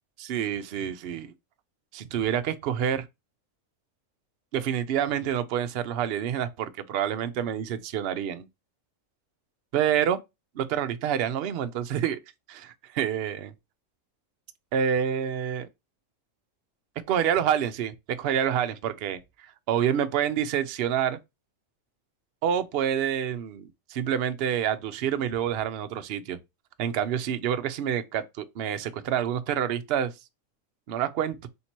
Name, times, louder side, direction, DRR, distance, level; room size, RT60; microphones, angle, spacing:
voice 1, 0.2-1.3 1.9-3.1 4.5-8.5 9.7-10.2 10.6-12.2 12.5-13.5 14.7-15.7 17.1-19.2 19.7-21.2 22.4-26.4 26.8-30.1 30.9-31.5, right 9 dB, 60° right, 0.7 m, -27 dB
3.5 x 2.9 x 4.3 m
omnidirectional pair, 1.4 m